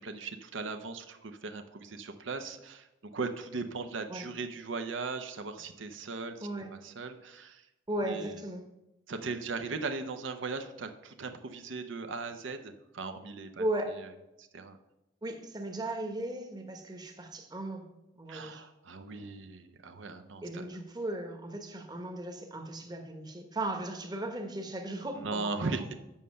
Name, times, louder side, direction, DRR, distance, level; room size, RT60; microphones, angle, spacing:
voice 1, 0.0-2.9 3.1-7.7 8.0-8.4 9.1-13.6 14.4-14.8 18.3-20.7 25.2-25.9, right 4 dB, 75° right, 7 dB, 0.6 m, -38 dB
voice 2, 6.4-6.8 7.9-8.6 13.6-14.0 15.2-17.9 18.1-18.6 20.4-25.9, right 1 dB, 20° right, 4 dB, 1.0 m, -36 dB
7.4 x 5.5 x 6.4 m, 0.93 s
head